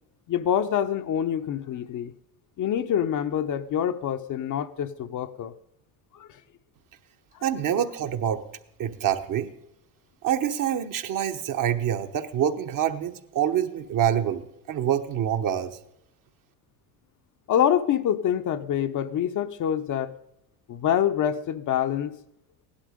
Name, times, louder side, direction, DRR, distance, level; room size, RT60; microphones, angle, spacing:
voice 1, 0.3-2.1 2.6-5.5 6.1-6.3 17.5-20.1 20.7-22.2, left 9 dB, 40° left, 9 dB, 0.8 m, -26 dB
voice 2, 7.4-8.4 8.8-9.5 10.2-14.4 14.7-15.8, right 10 dB, 45° right, 7 dB, 1.2 m, -26 dB
16.5 x 11.5 x 5.1 m, 0.83 s
supercardioid pair, 85°, 46 cm